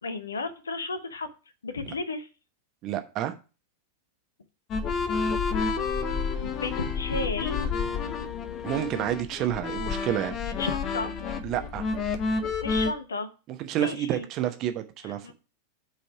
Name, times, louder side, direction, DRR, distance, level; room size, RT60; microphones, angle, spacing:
voice 1, 0.0-1.3 1.6-2.3 6.4-7.6 10.6-11.2 12.6-13.3 13.8-14.3 15.0-15.3, left 3 dB, 70° left, 0.9 m, -33 dB
voice 2, 2.8-3.3 8.6-10.4 11.4-11.9 13.6-15.3, right 12 dB, 35° right, 0.9 m, -29 dB
sound 1, 4.7-12.9, left 5 dB, 30° left, 0.8 m, -29 dB
8.0 x 4.1 x 4.8 m
figure-of-eight pair, 90°, 0 cm